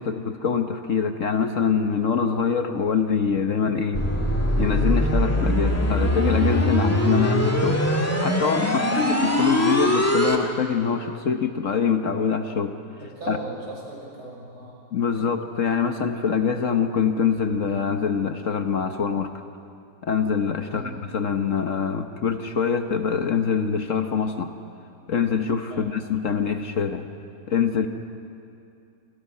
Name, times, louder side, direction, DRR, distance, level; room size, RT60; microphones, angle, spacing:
voice 1, 0.0-4.0 4.6-7.8 8.2-12.7 13.3-13.4 14.9-19.3 20.0-24.5 25.1-27.1 27.5-27.9, left 6 dB, 55° left, 6 dB, 1.3 m, -24 dB
sound 1, 3.9-10.4, equal, 10° left, 1.8 m, -22 dB
voice 2, 13.0-14.7 20.7-21.0 25.7-25.9, right 1 dB, 70° right, -3 dB, 7.2 m, -37 dB
28.0 x 26.5 x 5.6 m, 2.6 s
omnidirectional pair, 1.8 m